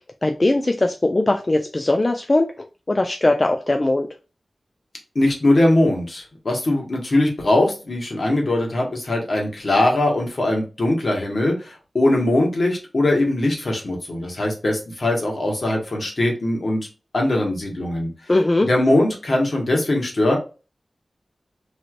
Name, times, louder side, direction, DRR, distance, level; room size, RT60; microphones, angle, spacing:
voice 1, 0.2-4.1 18.3-18.7, left 2 dB, 35° left, 0.4 m, -20 dB
voice 2, 5.1-16.8 17.1-18.1 18.6-20.4, left 1 dB, 65° left, 1.4 m, -21 dB
3.1 x 2.7 x 2.5 m
wide cardioid pair, 65°, 0 cm